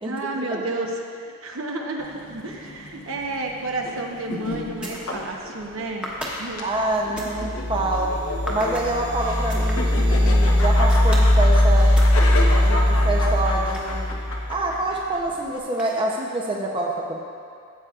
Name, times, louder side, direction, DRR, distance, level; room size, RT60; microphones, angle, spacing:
voice 1, 0.0-6.1 6.4-6.7, right 2 dB, 65° right, 0 dB, 0.9 m, -31 dB
sound 1, 2.0-15.6, left 1 dB, 70° left, 1.0 m, -32 dB
sound 2, 3.9-4.1 4.6-5.1 6.0-7.4 8.5-8.9 9.5-9.8 10.7-11.4 12.0-12.2 12.7-14.4 15.7-16.2, equal, 5° right, 1.1 m, -35 dB
voice 2, 6.6-8.1 8.5-11.9 12.4-14.2 14.5-17.2, right 2 dB, 25° right, -2 dB, 0.7 m, -26 dB
sound 3, 7.2-14.7, left 1 dB, 85° right, 1.9 m, -20 dB
14.5 x 8.4 x 2.4 m, 2.3 s
head